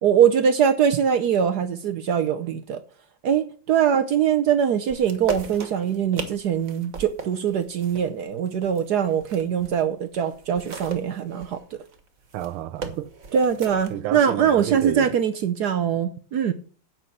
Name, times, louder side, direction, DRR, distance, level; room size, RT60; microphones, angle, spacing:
voice 1, 0.0-2.8 3.2-11.6 13.3-16.5, right 8 dB, 65° right, 1.1 m, -22 dB
sound 1, 4.9-9.8 10.1-13.9, right 4 dB, 40° right, 1.7 m, -36 dB
voice 2, 12.3-13.1 13.9-15.1, right 12 dB, 85° right, 1.6 m, -30 dB
9.3 x 5.9 x 7.9 m
omnidirectional pair, 2.3 m